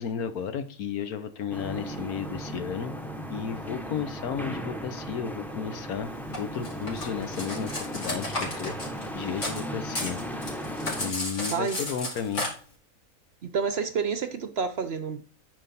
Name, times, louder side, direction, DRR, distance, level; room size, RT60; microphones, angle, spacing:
voice 1, 0.0-2.9 3.3-6.1 6.4-8.8 9.1-10.2 10.6-12.5, left 7 dB, 80° left, 1.4 m, -33 dB
sound 1, 1.5-11.1, equal, ahead, 0.7 m, -36 dB
Cutlery silverware, 6.3-9.6 9.9-12.5, left 2 dB, 55° left, 3.0 m, -33 dB
voice 2, 11.5-11.8 13.4-15.2, right 5 dB, 55° right, 0.8 m, -29 dB
9.0 x 5.6 x 4.3 m
omnidirectional pair, 1.5 m